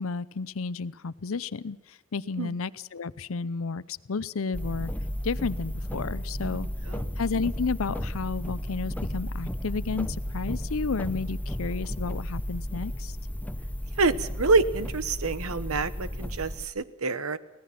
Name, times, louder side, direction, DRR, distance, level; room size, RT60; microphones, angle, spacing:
voice 1, 0.0-4.9 5.2-6.7 7.2-13.2, left 4 dB, 70° left, 17 dB, 0.6 m, -32 dB
sound 1, 4.5-16.7, equal, 5° left, 0.9 m, -33 dB
voice 2, 6.5-7.1 14.0-17.4, right 3 dB, 85° right, 15 dB, 1.1 m, -27 dB
25.0 x 17.5 x 5.9 m, 1.1 s
head